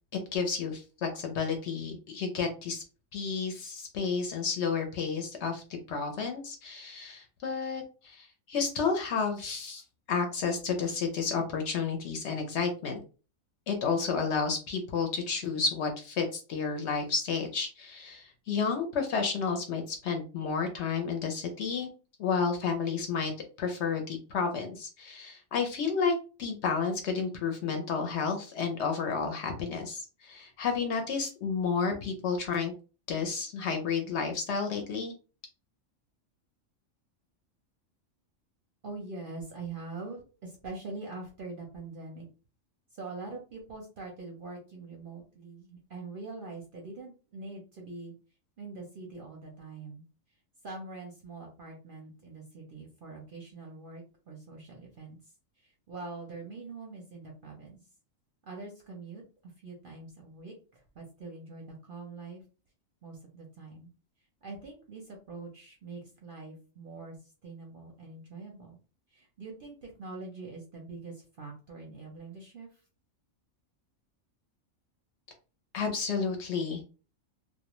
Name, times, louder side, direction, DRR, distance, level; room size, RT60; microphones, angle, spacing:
voice 1, 0.3-2.8 3.1-13.0 13.7-21.9 22.2-23.3 23.6-32.7 33.1-35.1 75.7-76.8, left 5 dB, 65° left, 5 dB, 0.8 m, -31 dB
voice 2, 38.8-42.3 42.9-48.1 48.6-50.0 50.6-55.3 55.6-57.8 58.4-62.4 63.0-63.9 64.4-68.8 69.1-72.8, right 3 dB, 55° right, 0 dB, 0.6 m, -44 dB
2.4 x 2.1 x 2.9 m, 0.35 s
omnidirectional pair, 1.4 m